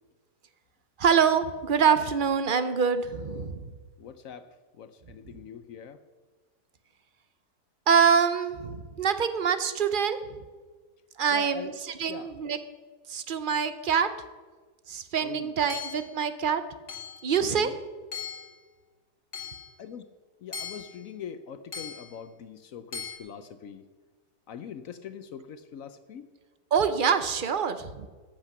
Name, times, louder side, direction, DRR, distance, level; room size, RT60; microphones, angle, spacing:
voice 1, 1.0-3.7 7.9-10.2 11.2-12.6 13.1-14.1 14.9-16.6 17.2-17.7 26.7-28.1, right 6 dB, 55° right, 11 dB, 0.5 m, -25 dB
voice 2, 4.0-4.5 4.8-6.0 11.3-11.7 12.1-12.3 15.2-15.5 17.4-17.8 19.8-20.1 20.4-23.9 24.5-26.3, left 7 dB, 65° left, 11 dB, 1.0 m, -42 dB
Hammer / Chink clink, 15.7-16.1 16.9-17.3 18.1-18.5 19.3-19.7 20.5-21.0 21.7-22.1 22.9-23.2, left 7 dB, 45° left, 2.4 m, -38 dB
14.0 x 8.9 x 5.8 m, 1.4 s
omnidirectional pair, 1.7 m